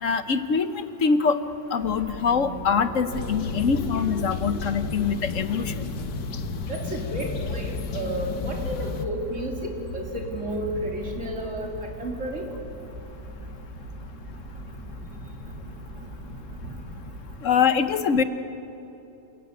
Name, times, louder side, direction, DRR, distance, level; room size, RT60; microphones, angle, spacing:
voice 1, 0.0-1.4 1.7-5.8 17.4-18.2, left 6 dB, 55° left, 11 dB, 1.1 m, -24 dB
sound 1, 1.8-17.2, equal, 75° right, 8.4 m, -39 dB
sound 2, 3.1-9.1, left 5 dB, 70° left, 1.6 m, -32 dB
voice 2, 6.7-12.4, right 1 dB, 40° right, 0 dB, 3.7 m, -32 dB
28.0 x 16.0 x 9.5 m, 2.9 s
omnidirectional pair, 1.9 m